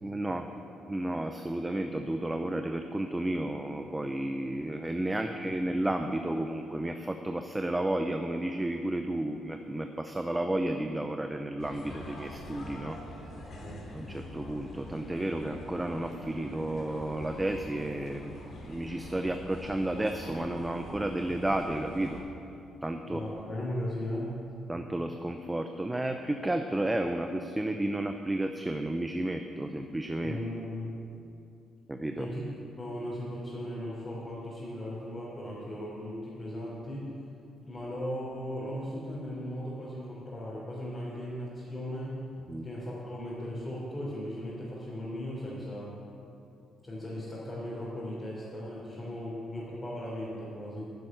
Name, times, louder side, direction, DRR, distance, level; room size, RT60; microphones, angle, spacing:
voice 1, 0.0-0.5 0.9-13.0 13.9-18.3 18.6-22.2 22.8-23.2 24.7-30.4 31.9-32.3 42.5-42.7, right 1 dB, 15° right, 6 dB, 0.6 m, -32 dB
sound 1, 11.6-22.2, left 1 dB, 60° left, 3.3 m, -44 dB
voice 2, 23.0-24.3 30.2-30.9 32.2-32.4 32.8-37.1 37.7-42.2 42.6-46.0 46.8-50.9, left 1 dB, 25° left, -8 dB, 3.6 m, -37 dB
12.0 x 6.3 x 9.0 m, 2.6 s
cardioid pair, 90°, 0 cm